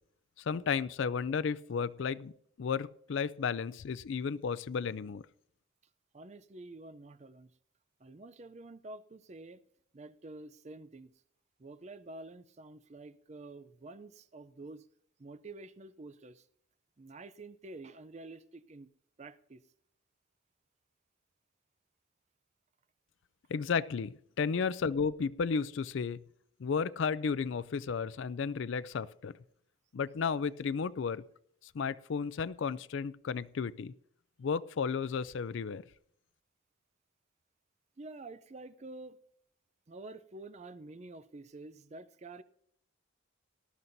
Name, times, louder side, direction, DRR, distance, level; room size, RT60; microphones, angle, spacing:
voice 1, 0.4-2.3 2.6-5.2 23.5-26.2 26.6-29.3 29.9-31.2 31.7-33.9 34.4-35.8, left 5 dB, 65° left, 0.4 m, -33 dB
voice 2, 6.1-7.5 8.0-9.6 9.9-11.1 11.6-14.9 15.2-16.5 17.0-18.9 19.2-19.6 24.5-24.7 38.0-39.2 39.9-42.4, right 2 dB, 35° right, 0.5 m, -48 dB
18.5 x 12.5 x 2.7 m
head